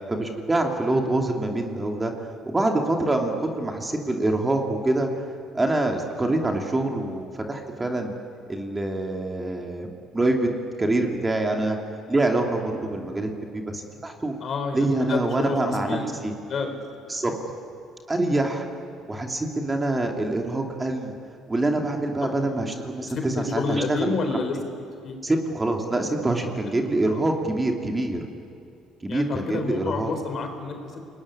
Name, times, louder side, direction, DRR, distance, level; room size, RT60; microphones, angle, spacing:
voice 1, 0.1-5.2 5.5-8.1 8.5-9.9 10.1-10.5 10.8-11.8 12.1-14.3 14.7-16.3 17.1-17.3 18.1-18.7 19.1-21.2 21.5-24.2 25.2-28.2 29.0-30.1, right 2 dB, 15° right, 2 dB, 2.8 m, -25 dB
voice 2, 14.4-16.1 16.5-16.8 22.2-22.3 23.2-24.6 25.0-25.2 27.1-27.2 29.1-30.9, left 4 dB, 50° left, 5 dB, 4.2 m, -29 dB
29.5 x 20.5 x 9.9 m, 2.5 s
cardioid pair, 105°, 0 cm